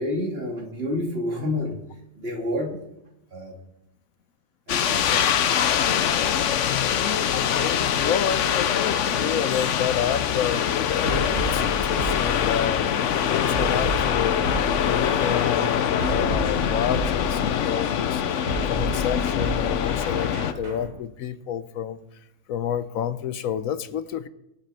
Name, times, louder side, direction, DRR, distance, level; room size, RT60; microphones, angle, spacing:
voice 1, 0.0-1.8 2.2-2.8 3.3-3.5 4.7-5.4, left 1 dB, 45° right, 0 dB, 2.9 m, -29 dB
sound 1, 4.7-20.5, left 9 dB, 65° left, 1.0 m, -24 dB
voice 2, 6.6-10.6 11.1-12.9 13.3-14.5 14.8-18.2 18.7-22.0 22.5-24.3, left 9 dB, 85° left, 13 dB, 1.2 m, -29 dB
sound 2, 11.0-12.8 13.5-17.7 18.5-20.9, right 1 dB, 80° right, 3.6 m, -32 dB
24.0 x 8.4 x 4.3 m, 0.87 s
omnidirectional pair, 1.4 m